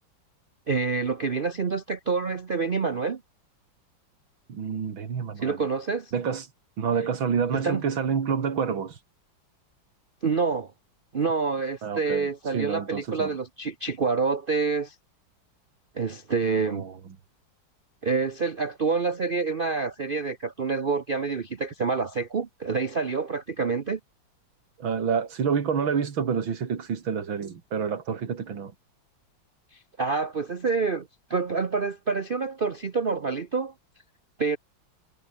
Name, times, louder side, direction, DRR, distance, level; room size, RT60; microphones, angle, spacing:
voice 1, 0.7-3.2 5.4-6.1 7.5-7.9 10.2-10.7 11.1-14.9 15.9-16.8 18.0-24.0 29.7-33.7 34.4-34.6, right 4 dB, 45° right, 0.7 m, -27 dB
voice 2, 4.5-5.6 6.1-6.5 6.8-9.0 11.8-13.3 16.7-16.9 24.8-28.7, right 6 dB, 90° right, 3.0 m, -28 dB
omnidirectional pair, 2.1 m